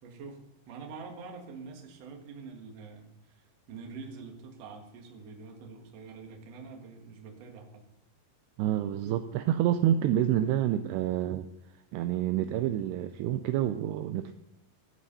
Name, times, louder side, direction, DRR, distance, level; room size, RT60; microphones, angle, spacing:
voice 1, 0.0-7.7, right 4 dB, 55° right, 2 dB, 2.0 m, -46 dB
voice 2, 8.6-11.5 11.9-14.3, right 11 dB, 80° right, 9 dB, 2.5 m, -28 dB
14.0 x 8.1 x 5.5 m, 0.96 s
omnidirectional pair, 5.3 m